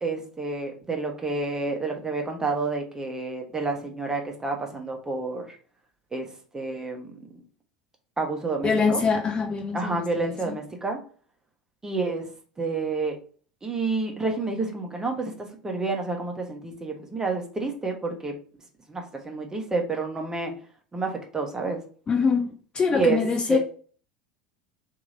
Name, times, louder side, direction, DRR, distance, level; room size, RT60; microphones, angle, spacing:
voice 1, 0.0-5.4 6.1-6.3 6.5-7.1 8.2-9.0 9.7-11.0 11.8-12.3 12.6-13.2 13.6-18.3 18.9-20.5 20.9-21.8 22.9-23.2 23.5-23.6, right 3 dB, 15° right, 2 dB, 0.9 m, -29 dB
voice 2, 8.6-10.6 22.1-23.6, left 5 dB, 25° left, 2 dB, 0.6 m, -24 dB
3.0 x 2.7 x 3.8 m, 0.42 s
figure-of-eight pair, 75°, 4 cm